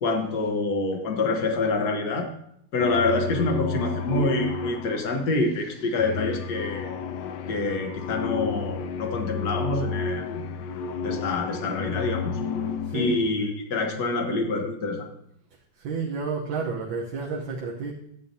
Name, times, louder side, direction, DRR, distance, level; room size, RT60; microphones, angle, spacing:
voice 1, 0.0-2.3 2.7-7.0 7.5-10.5 11.0-12.4 12.9-15.1, left 3 dB, 55° left, 3 dB, 1.7 m, -26 dB
sound 1, 2.8-13.3, left 5 dB, 75° left, 1.1 m, -32 dB
voice 2, 12.8-13.2 15.8-17.9, right 4 dB, 75° right, -2 dB, 1.7 m, -31 dB
12.0 x 8.4 x 2.8 m, 0.72 s
omnidirectional pair, 2.2 m